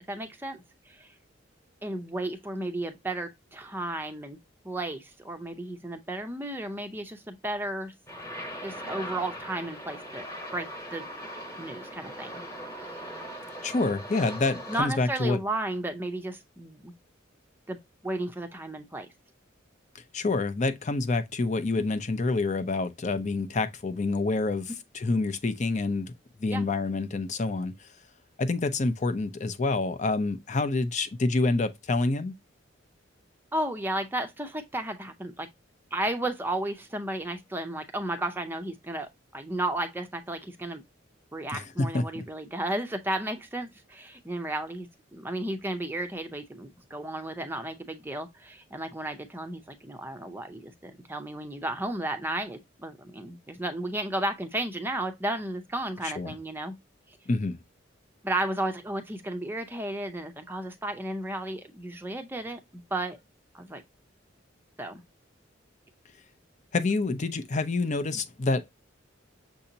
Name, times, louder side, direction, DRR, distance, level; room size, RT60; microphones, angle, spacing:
voice 1, 0.1-1.1 1.8-4.4 4.6-7.9 8.6-10.3 10.5-11.1 11.6-12.4 12.9-13.0 14.7-16.9 17.7-19.1 21.8-21.9 26.5-26.7 33.5-35.5 35.9-40.8 41.3-56.7 58.2-63.2 63.5-63.8 64.8-65.0, right 1 dB, 10° right, 0.5 m, -33 dB
sound 1, 8.1-14.8, equal, 15° left, 1.1 m, -40 dB
voice 2, 13.6-15.4 19.9-26.1 26.4-27.9 28.4-32.3 41.5-42.2 56.0-56.3 57.3-57.6 66.7-68.7, left 3 dB, 40° left, 0.5 m, -27 dB
6.6 x 2.8 x 2.7 m
head